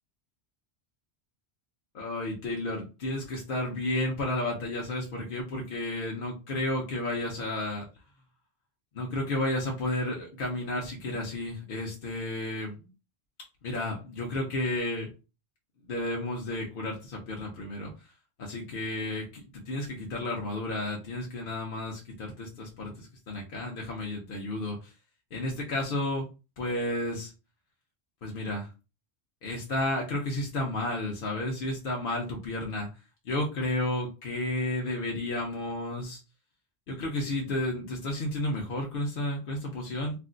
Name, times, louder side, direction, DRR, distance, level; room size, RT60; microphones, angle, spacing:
voice 1, 1.9-7.9 8.9-12.8 13.6-15.1 15.9-17.9 18.4-24.9 25.3-26.3 26.6-27.3 28.2-28.7 29.4-32.9 33.3-36.2 36.9-40.1, left 1 dB, 60° left, -1 dB, 0.8 m, -32 dB
2.5 x 2.3 x 3.7 m, 0.30 s
omnidirectional pair, 1.1 m